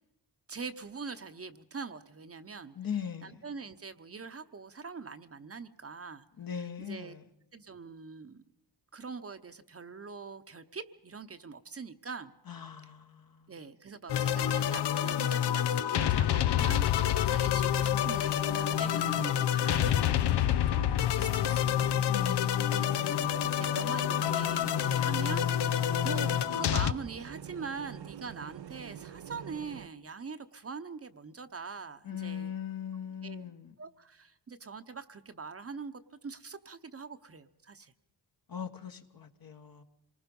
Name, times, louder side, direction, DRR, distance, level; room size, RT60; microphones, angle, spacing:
voice 1, 0.5-2.7 3.2-6.2 6.8-7.1 7.5-8.4 8.9-12.3 13.5-16.9 17.3-22.0 22.8-23.1 23.5-32.5 33.2-33.5 33.8-37.9, right 5 dB, 35° right, 9 dB, 0.9 m, -43 dB
voice 2, 2.7-3.4 6.4-7.2 12.5-13.5 22.1-23.8 32.0-33.7 38.5-39.8, left 8 dB, 60° left, 6 dB, 1.6 m, -40 dB
sound 1, 14.1-26.9, left 10 dB, 80° left, 0.7 m, -28 dB
sound 2, 18.5-29.9, right 9 dB, 70° right, 0.7 m, -46 dB
26.5 x 20.0 x 5.4 m, 0.83 s
cardioid pair, 95°, 40 cm